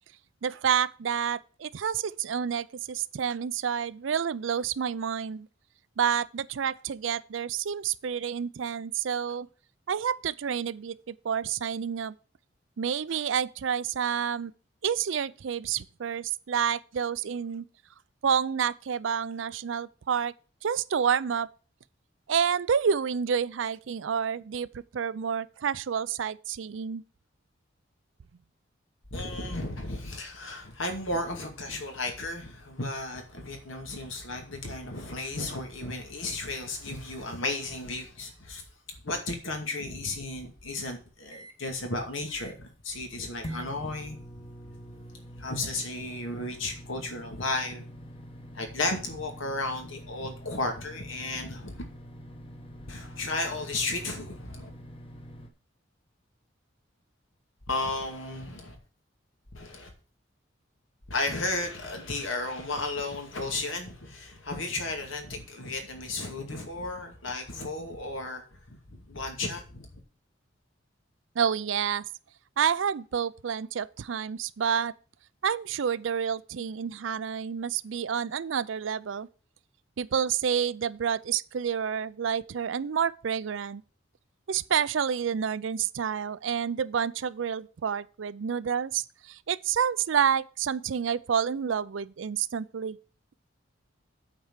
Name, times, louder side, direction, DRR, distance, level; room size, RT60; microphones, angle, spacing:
voice 1, 0.4-5.5 6.0-9.5 9.9-12.1 12.8-14.5 14.8-17.7 18.2-20.3 20.6-21.5 22.3-27.0 71.4-72.0 72.6-74.9 75.4-79.3 80.0-83.8 84.5-93.0, right 7 dB, 75° right, 0.4 m, -29 dB
voice 2, 29.1-38.6 39.0-44.2 45.4-47.8 48.5-51.9 52.9-54.7 57.7-58.8 59.5-59.9 61.1-69.9, left 2 dB, 85° left, 2.3 m, -34 dB
sound 1, 40.3-41.6 42.0-42.1 42.3-42.8 43.4-55.5, equal, 30° left, 1.1 m, -45 dB
8.7 x 4.6 x 7.3 m
head